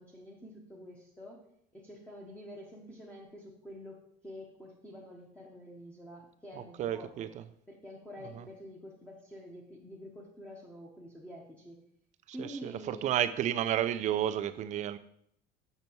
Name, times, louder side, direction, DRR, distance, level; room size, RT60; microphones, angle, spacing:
voice 1, 0.0-1.4 1.7-7.3 7.7-11.8 12.3-13.1, equal, 5° left, -2 dB, 1.0 m, -48 dB
voice 2, 6.8-7.4 8.4-8.5 12.3-15.0, right 11 dB, 40° right, 11 dB, 0.5 m, -31 dB
6.8 x 6.6 x 4.5 m, 0.69 s
cardioid pair, 160°, 18 cm